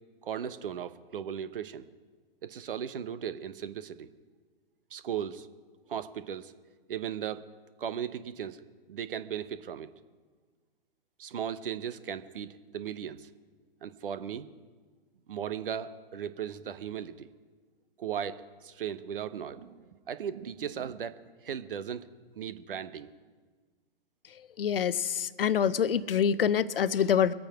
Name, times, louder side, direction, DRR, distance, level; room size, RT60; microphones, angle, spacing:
voice 1, 0.2-1.9 2.4-4.1 4.9-5.5 5.9-6.5 6.9-7.5 7.8-8.6 8.9-9.9 11.2-13.3 13.8-14.5 15.3-17.3 18.0-22.1 22.4-23.1, right 8 dB, 65° right, 12 dB, 1.0 m, -37 dB
voice 2, 24.6-27.3, left 8 dB, 70° left, 16 dB, 0.7 m, -26 dB
22.5 x 8.7 x 4.8 m, 1.4 s
figure-of-eight pair, 120°, 29 cm